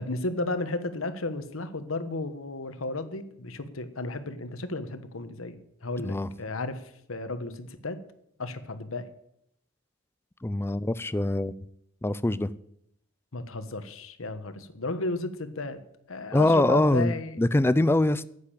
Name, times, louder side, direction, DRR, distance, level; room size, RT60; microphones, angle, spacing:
voice 1, 0.0-5.6 5.8-8.0 8.4-9.1 13.3-15.8 16.1-17.4, left 2 dB, 80° left, 10 dB, 1.2 m, -33 dB
voice 2, 10.4-11.5 12.0-12.5 16.3-18.2, left 1 dB, 10° left, 16 dB, 0.4 m, -23 dB
10.0 x 8.3 x 8.7 m, 0.75 s
head